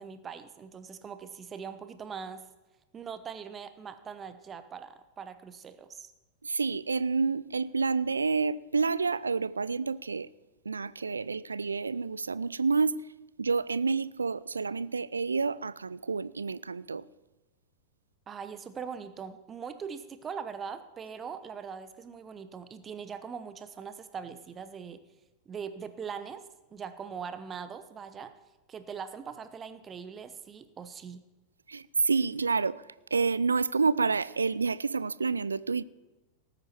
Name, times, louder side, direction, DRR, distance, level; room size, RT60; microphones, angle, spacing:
voice 1, 0.0-2.4 2.9-6.1 18.3-25.0 25.5-26.4 26.7-28.3 28.7-31.2, right 6 dB, 20° right, 0.9 m, -41 dB
voice 2, 6.4-10.3 10.7-13.0 13.4-17.1 31.7-32.8 33.1-35.8, right 4 dB, 75° right, 0.4 m, -29 dB
18.5 x 9.3 x 4.5 m
figure-of-eight pair, 90°, 0 cm